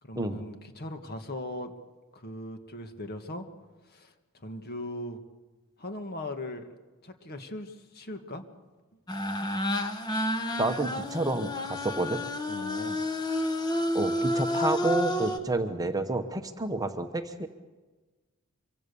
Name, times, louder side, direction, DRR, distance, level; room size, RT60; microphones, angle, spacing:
voice 1, 0.0-1.7 2.1-3.5 3.8-5.2 5.8-6.7 7.0-8.4 12.5-13.1, left 1 dB, 45° left, 6 dB, 1.9 m, -39 dB
sound 1, 9.1-15.4, left 1 dB, 20° left, 1.8 m, -30 dB
voice 2, 10.6-12.2 13.9-17.5, right 2 dB, 15° right, 7 dB, 1.1 m, -29 dB
25.0 x 24.5 x 7.0 m, 1.3 s
head